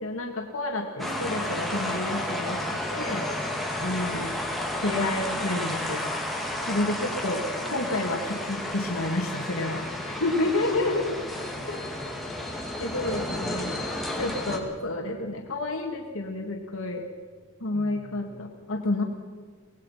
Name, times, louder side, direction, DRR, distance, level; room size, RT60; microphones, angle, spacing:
voice 1, 0.0-3.4 3.8-4.3 4.8-6.0 6.7-9.8 10.2-11.2 11.7-11.8 12.8-13.7 14.2-17.0 17.6-19.0, left 2 dB, 75° left, 1 dB, 2.1 m, -30 dB
sound 1, 1.0-14.6, left 1 dB, ahead, 2.4 m, -32 dB
sound 2, 1.0-17.5, equal, 55° right, 3.7 m, -49 dB
voice 2, 9.9-10.6 11.3-12.5 12.9-13.9 17.7-18.5, equal, 25° left, -4 dB, 7.3 m, -47 dB
24.5 x 18.5 x 5.8 m, 1.5 s
head